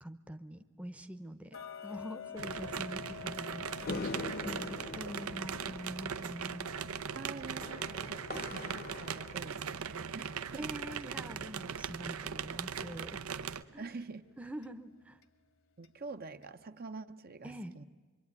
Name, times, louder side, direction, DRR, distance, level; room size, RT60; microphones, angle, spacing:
voice 1, 0.0-6.7 10.6-13.2 13.7-13.9 14.4-15.2 17.4-17.7, equal, 5° right, 7 dB, 0.8 m, -45 dB
Tick-tock, 1.5-12.4 12.8-12.9 13.4-13.5 14.0-14.1 14.6-14.7 15.2-15.3 15.8-15.9 16.4-16.5, left 8 dB, 65° left, 1.4 m, -50 dB
sound 1, 2.4-13.6, right 7 dB, 80° right, 0.7 m, -39 dB
sound 2, 3.9-10.4, left 3 dB, 45° left, 0.9 m, -44 dB
voice 2, 7.1-10.7 13.7-14.3 15.8-17.8, right 4 dB, 45° right, 8 dB, 0.8 m, -46 dB
25.0 x 24.0 x 9.6 m, 1.4 s
head